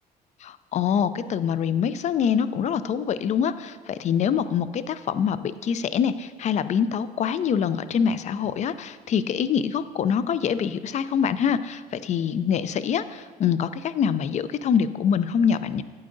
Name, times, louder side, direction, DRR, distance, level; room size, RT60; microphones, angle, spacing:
voice 1, 0.4-15.8, left 7 dB, 45° left, 14 dB, 0.4 m, -25 dB
11.5 x 8.6 x 2.6 m, 1.5 s
cardioid pair, 110°, 17 cm